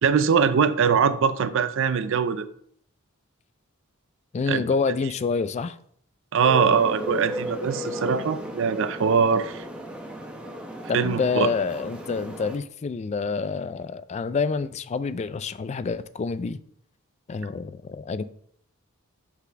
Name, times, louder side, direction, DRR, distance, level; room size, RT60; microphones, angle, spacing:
voice 1, 0.0-2.4 4.5-4.6 6.3-9.6 10.9-11.5, right 6 dB, 60° right, 0.4 m, -22 dB
voice 2, 4.3-5.8 10.9-16.6 17.3-18.2, left 4 dB, 30° left, 0.3 m, -27 dB
sound 1, 6.4-12.5, equal, 5° right, 0.9 m, -35 dB
5.7 x 4.0 x 5.7 m
head